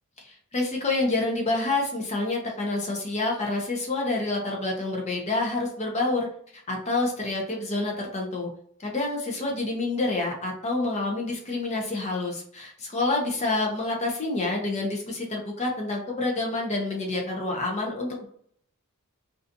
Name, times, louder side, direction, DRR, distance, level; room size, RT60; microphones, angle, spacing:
voice 1, 0.2-6.3 6.7-8.5 8.8-18.3, left 2 dB, 30° left, 0 dB, 0.5 m, -28 dB
2.5 x 2.3 x 2.6 m, 0.63 s
head